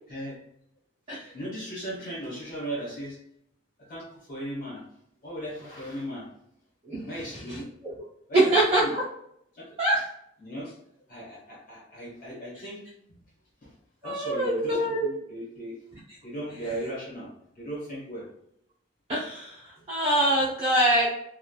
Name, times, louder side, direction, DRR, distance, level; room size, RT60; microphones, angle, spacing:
voice 1, 1.3-3.2 3.9-4.8 5.2-6.3 7.0-7.7 8.3-8.9 9.5-9.7 10.4-10.7 11.1-12.8 13.1-13.2 14.0-15.8 16.2-18.3, right 1 dB, 50° left, -6 dB, 1.1 m, -37 dB
voice 2, 8.3-9.0 9.8-10.0 14.0-15.1 19.1-21.1, right 1 dB, 35° right, -10 dB, 0.6 m, -24 dB
3.0 x 2.2 x 2.2 m, 0.72 s
head